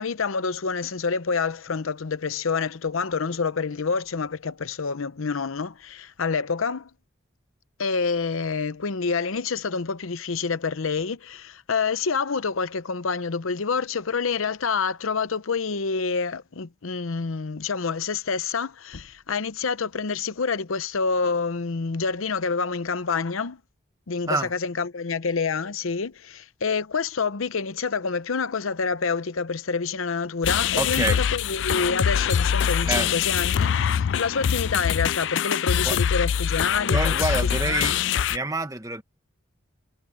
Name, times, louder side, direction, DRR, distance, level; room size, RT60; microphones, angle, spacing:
voice 1, 0.0-6.9 7.8-23.6 24.1-37.1 37.6-38.0, left 5 dB, 90° left, 0.8 m, -27 dB
sound 1, 30.4-38.4, left 8 dB, 65° left, 0.3 m, -24 dB
voice 2, 30.8-31.2 32.9-33.1 35.8-36.0 36.9-38.0 38.3-39.0, right 2 dB, 15° right, 1.4 m, -27 dB
head